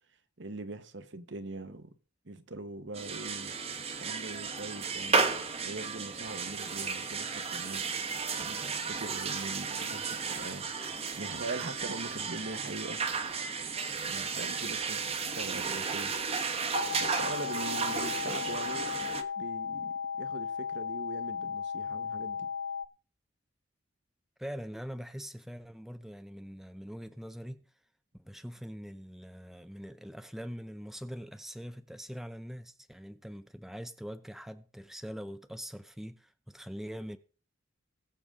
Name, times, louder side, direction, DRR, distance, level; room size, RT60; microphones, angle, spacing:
voice 1, 0.4-1.9 2.2-3.5 4.0-5.3 5.6-8.0 8.4-10.7 11.2-13.0 14.1-16.1 17.0-18.9 19.4-22.5, right 2 dB, 65° right, 1.2 m, -42 dB
sound 1, 2.9-19.2, right 5 dB, 30° right, 1.2 m, -34 dB
sound 2, 16.7-22.9, left 6 dB, 70° left, 0.4 m, -36 dB
voice 2, 24.4-27.6 28.1-37.2, equal, ahead, 0.6 m, -43 dB
20.5 x 7.1 x 3.7 m
head